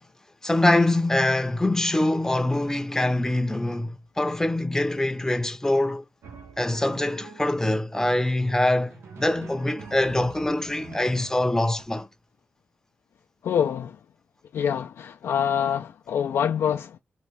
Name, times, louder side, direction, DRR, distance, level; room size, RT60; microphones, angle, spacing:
voice 1, 0.4-6.0 6.6-12.1, left 1 dB, 10° left, 0.6 m, -24 dB
Drum, 6.2-7.7 8.8-11.9, right 4 dB, 80° right, 0.7 m, -44 dB
voice 2, 13.4-14.0 14.5-17.0, left 8 dB, 85° left, 0.3 m, -25 dB
3.0 x 2.4 x 3.2 m
cardioid pair, 50°, 4 cm